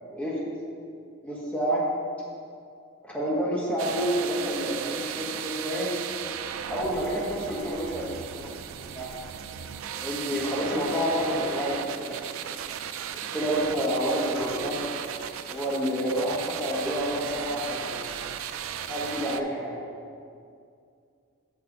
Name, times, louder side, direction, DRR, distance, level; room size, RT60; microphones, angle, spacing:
voice 1, 0.1-0.4 1.2-1.8 3.0-5.9 6.7-8.5 8.9-9.1 9.9-12.4 13.1-14.8 15.5-18.2 18.8-19.8, equal, 5° left, -6 dB, 1.5 m, -29 dB
sound 1, 3.8-19.4, right 8 dB, 75° right, 0.4 m, -36 dB
6.4 x 6.1 x 5.1 m, 2.4 s
head